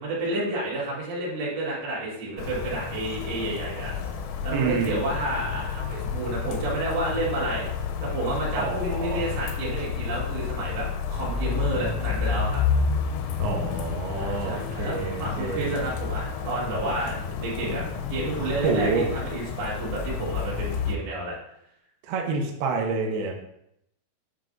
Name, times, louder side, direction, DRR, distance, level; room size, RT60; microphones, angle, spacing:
voice 1, 0.0-3.9 4.4-12.6 14.1-21.4, right 2 dB, 60° right, -5 dB, 3.4 m, -30 dB
sound 1, 2.4-21.0, left 6 dB, 85° left, 2.8 m, -30 dB
voice 2, 4.5-5.0 8.6-9.3 13.4-15.7 18.6-19.0 22.0-23.3, right 4 dB, 90° right, 1 dB, 2.2 m, -28 dB
9.6 x 4.6 x 2.6 m, 0.77 s
omnidirectional pair, 5.7 m